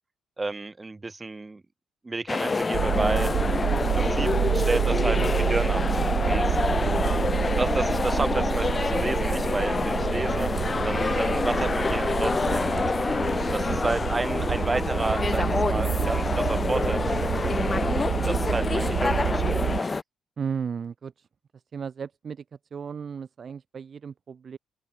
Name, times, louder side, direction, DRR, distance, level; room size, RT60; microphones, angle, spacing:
voice 1, 0.4-1.6 2.0-3.3 3.8-5.8 6.2-6.6 7.6-10.5 10.8-13.2 13.5-17.5 18.3-20.0, right 3 dB, 20° right, 1.8 m, -31 dB
sound 1, 2.3-20.0, left 4 dB, 30° left, 1.4 m, -27 dB
sound 2, 2.7-19.8, right 10 dB, 70° right, 0.7 m, -28 dB
voice 2, 20.4-21.3 21.5-22.4 22.7-24.6, right 6 dB, 45° right, 3.8 m, -35 dB
open air
cardioid pair, 90°, 0 cm